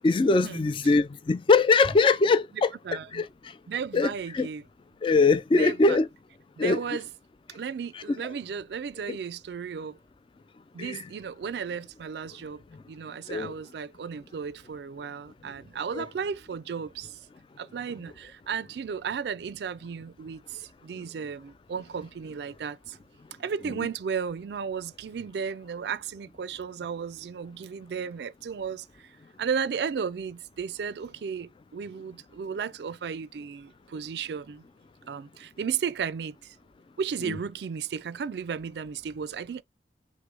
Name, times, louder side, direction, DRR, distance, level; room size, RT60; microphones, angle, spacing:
voice 1, 0.0-2.7 3.1-3.3 3.9-4.5 5.0-6.1 6.6-6.8 8.1-8.2 9.1-9.2 10.8-11.0 13.3-13.5 15.9-16.0, left 3 dB, 30° left, 0.3 m, -22 dB
voice 2, 2.5-3.2 3.7-4.6 5.5-6.0 6.6-7.1 7.5-10.0 10.7-17.1 17.6-23.0 23.4-28.9 29.4-34.6 35.1-36.5 37.0-39.6, right 6 dB, 65° right, 0.4 m, -34 dB
6.0 x 2.1 x 3.4 m
head